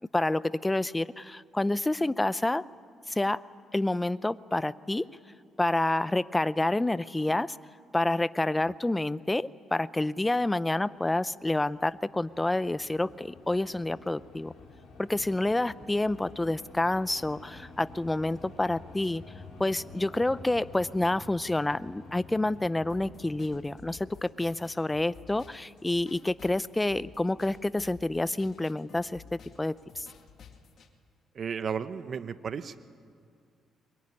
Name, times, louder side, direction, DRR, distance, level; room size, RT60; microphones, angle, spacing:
voice 1, 0.0-2.6 3.1-3.4 3.7-5.1 5.6-7.6 7.9-14.5 15.0-19.2 19.6-30.1, left 2 dB, 15° left, 17 dB, 0.6 m, -28 dB
sound 1, 11.3-25.7, left 3 dB, 75° left, 6.4 m, -50 dB
sound 2, 22.9-30.9, left 6 dB, 60° left, 2.1 m, -53 dB
voice 2, 31.3-32.8, right 6 dB, 50° right, 12 dB, 1.0 m, -34 dB
22.5 x 21.5 x 9.8 m, 2.2 s
cardioid pair, 90°, 0 cm